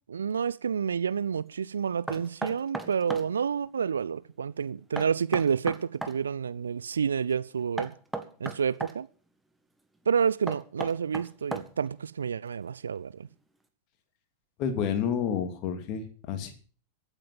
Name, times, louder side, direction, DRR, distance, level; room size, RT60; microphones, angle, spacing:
voice 1, 0.1-7.9 8.4-9.1 10.1-13.3, right 7 dB, 70° right, 0.6 m, -29 dB
Knock, 2.1-3.3 5.0-6.2 7.8-9.0 10.5-11.9, right 2 dB, 5° right, 1.8 m, -36 dB
voice 2, 14.6-16.5, left 7 dB, 40° left, 2.8 m, -30 dB
15.5 x 9.1 x 7.4 m
figure-of-eight pair, 90°, 0 cm